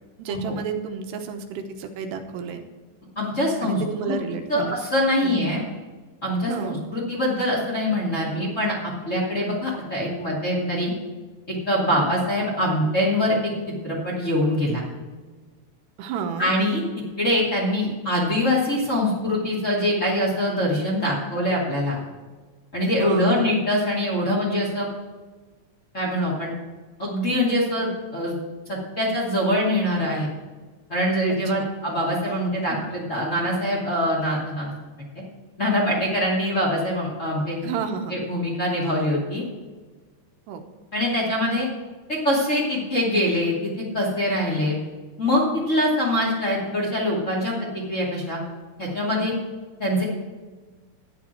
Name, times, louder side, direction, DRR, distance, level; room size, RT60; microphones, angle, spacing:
voice 1, 0.2-2.6 3.6-4.8 5.2-5.5 6.5-6.8 11.9-12.2 16.0-16.5 23.0-23.5 31.5-31.7 32.7-32.9 37.6-38.2 40.5-40.6, right 6 dB, 85° right, 5 dB, 3.1 m, -31 dB
voice 2, 3.2-3.8 4.1-4.2 4.5-5.6 6.2-10.9 11.5-14.8 16.4-16.8 17.2-22.0 22.7-24.9 25.9-26.5 27.0-28.4 28.7-30.3 30.9-34.7 35.0-35.1 35.6-37.6 38.1-39.4 40.9-41.7 42.1-44.8 45.2-47.5 47.9-48.4 48.8-49.3 49.8-50.0, left 1 dB, 20° left, -4 dB, 2.4 m, -24 dB
12.0 x 9.8 x 4.5 m, 1.3 s
omnidirectional pair, 4.7 m